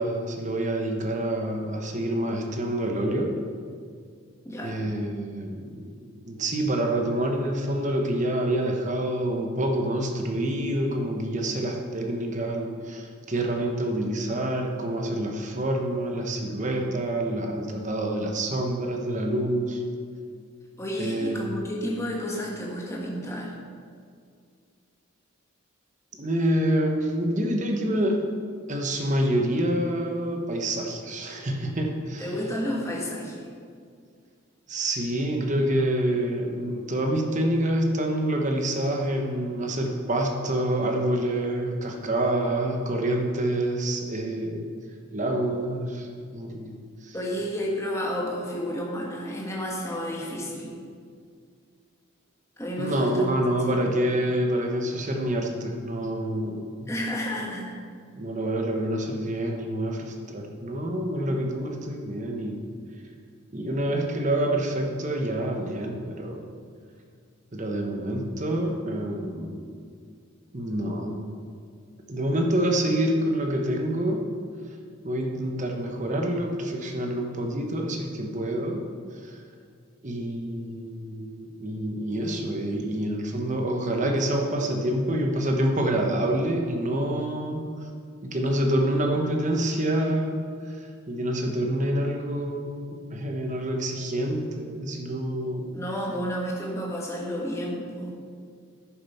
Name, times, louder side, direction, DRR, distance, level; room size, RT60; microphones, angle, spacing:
voice 1, 0.0-3.3 4.6-19.8 21.0-21.4 26.2-28.3 28.7-32.3 34.7-44.6 45.1-46.1 46.3-47.1 52.8-56.9 58.2-62.6 63.5-66.5 67.5-69.8 70.5-71.4 72.1-74.3 75.0-78.8 79.2-79.4 80.0-87.7 88.2-95.7, right 1 dB, 35° right, 2 dB, 1.1 m, -27 dB
voice 2, 4.4-4.8 20.8-23.5 32.2-33.4 47.1-50.7 52.6-53.4 53.7-53.8 56.9-57.7 95.7-98.2, equal, 15° left, -2 dB, 1.4 m, -31 dB
10.5 x 6.8 x 5.6 m, 2.1 s
head